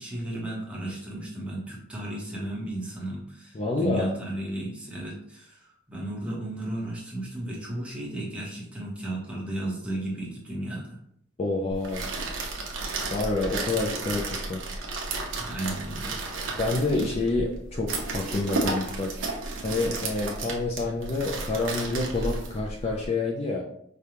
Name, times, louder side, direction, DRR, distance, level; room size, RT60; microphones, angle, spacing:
voice 1, 0.0-11.0 15.4-16.2, right 1 dB, 5° right, -4 dB, 0.9 m, -34 dB
voice 2, 3.5-4.1 11.4-12.1 13.1-14.6 16.5-19.1 19.6-23.6, left 2 dB, 30° left, 0 dB, 0.4 m, -28 dB
sound 1, 11.7-23.1, right 3 dB, 65° right, 0.8 m, -33 dB
5.0 x 2.3 x 2.9 m, 0.69 s
head